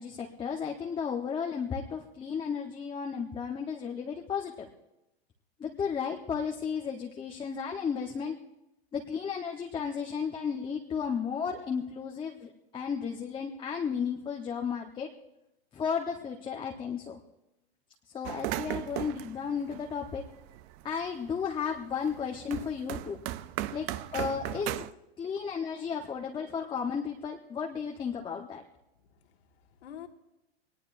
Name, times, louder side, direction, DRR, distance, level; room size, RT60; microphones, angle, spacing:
voice 1, 0.0-4.7 5.6-8.3 8.9-15.1 15.7-17.2 18.1-20.2 20.8-23.2 23.7-24.9 25.2-28.6, left 6 dB, 15° left, 1 dB, 1.0 m, -34 dB
sound 1, 18.2-20.9 21.3-24.9, right 15 dB, 30° right, 0.4 m, -37 dB
voice 2, 29.1-30.1, left 10 dB, 70° left, 4 dB, 2.0 m, -50 dB
22.0 x 19.5 x 2.6 m, 0.93 s
hypercardioid pair, 130°, 32 cm